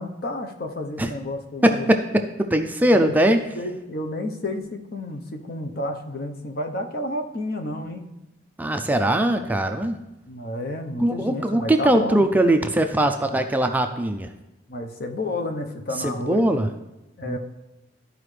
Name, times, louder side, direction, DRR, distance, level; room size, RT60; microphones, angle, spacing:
voice 1, 0.0-1.9 2.9-8.0 10.3-12.3 14.7-16.5 17.2-17.4, left 1 dB, 55° left, 5 dB, 0.8 m, -31 dB
voice 2, 1.6-3.4 8.6-10.0 11.0-14.3 16.0-16.7 17.3-17.4, right 1 dB, 10° right, 6 dB, 0.4 m, -21 dB
13.0 x 4.9 x 3.2 m, 0.99 s
head